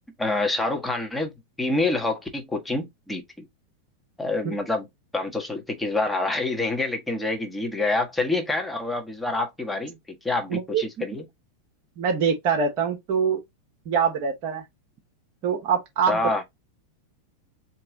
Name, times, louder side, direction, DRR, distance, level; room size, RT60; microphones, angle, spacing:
voice 1, 0.2-1.3 1.6-3.5 4.2-4.9 5.1-10.0 10.2-11.2 16.1-16.4, left 2 dB, 5° left, 1.5 m, -27 dB
voice 2, 10.5-10.8 12.0-13.4 13.9-14.6 15.4-16.2, right 6 dB, 40° right, 1.1 m, -24 dB
4.5 x 3.0 x 3.9 m
figure-of-eight pair, 90°, 0 cm